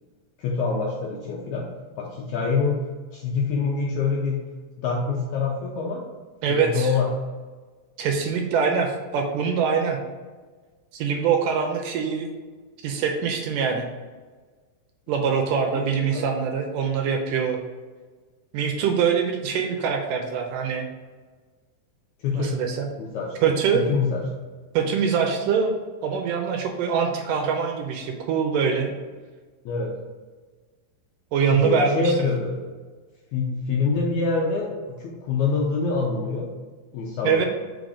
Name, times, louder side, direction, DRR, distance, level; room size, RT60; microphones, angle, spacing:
voice 1, 0.4-1.7 2.0-2.8 3.1-4.4 4.8-6.0 6.5-7.1 16.1-16.2 22.2-22.5 23.0-24.2 29.6-29.9 31.5-32.6 33.3-36.5 36.9-37.4, left 4 dB, 80° left, -2 dB, 1.7 m, -25 dB
voice 2, 6.4-6.9 8.0-10.0 10.9-12.3 12.8-13.8 15.1-17.6 18.5-20.9 22.3-22.9 23.4-23.9 24.7-25.8 26.0-28.9 31.3-32.1 37.2-37.4, right 6 dB, 80° right, 3 dB, 2.1 m, -23 dB
5.1 x 3.9 x 4.9 m, 1.4 s
omnidirectional pair, 4.1 m